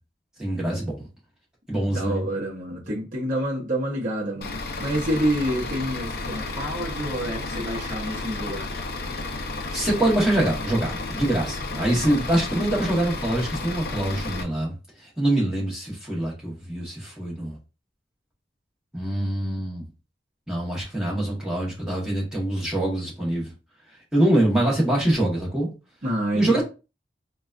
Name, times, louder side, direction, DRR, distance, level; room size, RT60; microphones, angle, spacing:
voice 1, 0.4-1.1 1.7-2.2 9.7-14.7 15.0-17.6 18.9-19.9 20.5-23.5 24.1-25.7 26.3-26.6, right 1 dB, 5° right, 1.1 m, -24 dB
voice 2, 1.7-8.7 12.0-12.2 26.0-26.6, right 1 dB, 45° right, 0.7 m, -28 dB
Bus / Idling, 4.4-14.4, left 3 dB, 55° left, 0.5 m, -32 dB
3.8 x 2.2 x 2.4 m
head